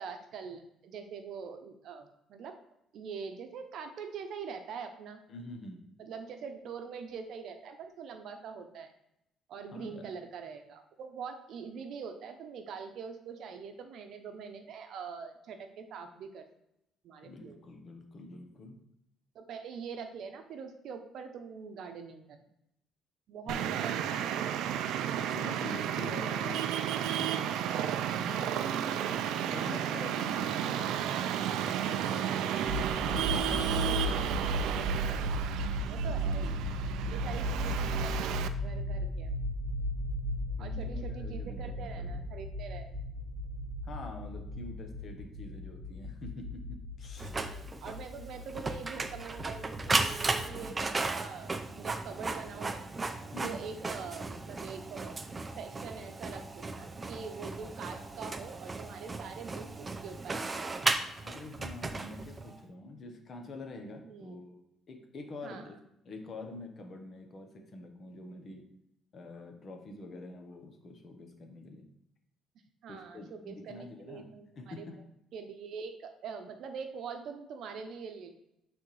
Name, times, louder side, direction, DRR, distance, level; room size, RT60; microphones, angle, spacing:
voice 1, 0.0-2.6 2.9-5.2 6.0-8.9 9.5-16.4 17.0-17.6 19.3-22.5 23.3-24.3 28.1-28.9 33.4-34.3 35.6-36.7 37.1-39.3 40.6-42.9 47.2-52.9 53.4-55.2 55.6-60.7 62.0-62.1 64.0-64.4 65.4-65.7 72.8-75.0 75.3-78.3, right 6 dB, 65° right, 6 dB, 0.7 m, -44 dB
voice 2, 5.3-5.8 9.7-10.1 17.2-18.8 23.5-24.2 25.1-26.7 27.0-29.0 29.5-32.5 33.0-34.5 40.6-42.3 43.8-47.4 53.3-53.6 61.2-64.6 64.9-65.7 66.0-68.6 69.1-71.9 72.9-74.3 74.6-75.0, left 2 dB, 45° left, 4 dB, 1.0 m, -46 dB
Traffic noise roadway noise, 23.5-38.5, right 10 dB, 85° right, 0.4 m, -33 dB
sound 1, 32.7-50.7, equal, 40° right, 1.3 m, -36 dB
Printer, 47.2-62.6, right 3 dB, 20° right, 0.5 m, -36 dB
8.4 x 3.5 x 3.3 m, 0.80 s
cardioid pair, 125°, 0 cm